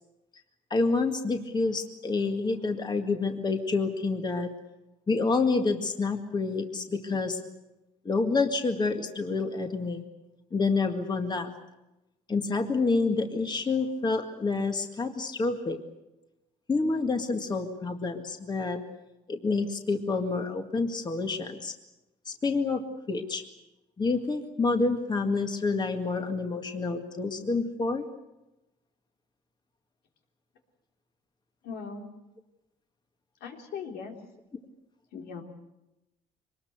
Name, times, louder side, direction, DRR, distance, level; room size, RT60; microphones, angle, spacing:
voice 1, 0.7-4.5 5.1-7.4 8.1-10.0 10.5-11.5 12.3-15.8 16.7-18.8 19.3-21.7 22.3-23.4 24.0-28.0, left 3 dB, 25° left, 5 dB, 2.0 m, -28 dB
voice 2, 31.6-32.1 33.4-34.1 35.1-35.4, left 5 dB, 80° left, 2 dB, 3.8 m, -39 dB
24.0 x 20.5 x 8.1 m, 0.95 s
cardioid pair, 110°, 17 cm